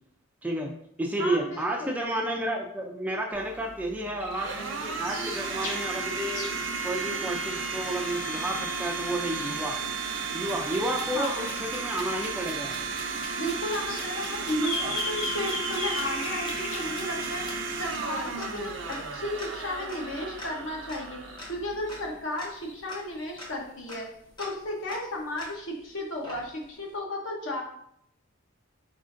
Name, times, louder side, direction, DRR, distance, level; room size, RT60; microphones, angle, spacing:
voice 1, 0.4-0.7 1.0-6.5 6.8-9.8 10.3-12.8, right 1 dB, 5° right, 0 dB, 0.3 m, -31 dB
voice 2, 1.2-2.0 11.1-11.5 13.4-17.4 17.8-21.2 21.5-24.1 24.4-27.6, left 1 dB, 65° left, 0 dB, 0.9 m, -34 dB
Domestic sounds home sounds, 3.3-22.2, right 4 dB, 65° right, 0.6 m, -34 dB
sound 1, 4.1-6.5 6.8-9.0 9.3-10.2 10.7-10.9 11.1-12.1 12.5-12.7 13.6-18.8 19.3-19.5 20.0-20.2 20.6-20.9 21.2-21.4 21.7-22.1 22.5-22.7 23.2-23.4, left 2 dB, 90° left, 1.2 m, -39 dB
sound 2, 10.5-25.8 26.2-26.9, left 1 dB, 20° left, 0.8 m, -45 dB
4.1 x 3.7 x 2.5 m, 0.72 s
head